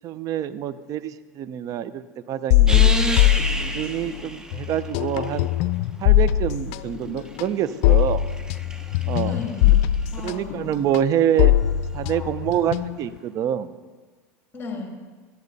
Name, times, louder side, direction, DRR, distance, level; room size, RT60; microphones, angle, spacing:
voice 1, 0.0-2.9 3.7-5.5 6.0-8.2 9.0-9.4 10.2-11.5 11.9-13.7, right 10 dB, 45° right, 14 dB, 0.6 m, -26 dB
sound 1, 2.5-4.2 4.5-13.2, left 13 dB, 65° left, 0.4 m, -20 dB
sound 2, 2.7-5.8 6.8-10.3 12.7-12.8, right 1 dB, 10° right, 1.0 m, -32 dB
voice 2, 9.3-10.8 12.0-12.3 14.5-14.9, left 4 dB, 25° left, 2 dB, 2.5 m, -36 dB
12.0 x 12.0 x 4.1 m, 1.4 s
supercardioid pair, 105°, 8 cm